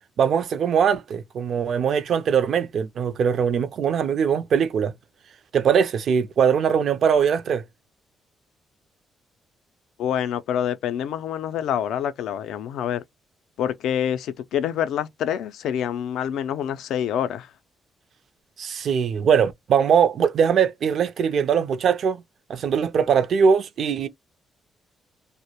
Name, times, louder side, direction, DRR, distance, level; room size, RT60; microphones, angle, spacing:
voice 1, 0.2-4.9 5.5-7.6 18.6-22.2 22.5-24.1, right 7 dB, 60° right, 0.4 m, -21 dB
voice 2, 10.0-13.0 13.6-17.5, left 9 dB, 80° left, 0.3 m, -26 dB
2.2 x 2.0 x 2.8 m
cardioid pair, 90°, 0 cm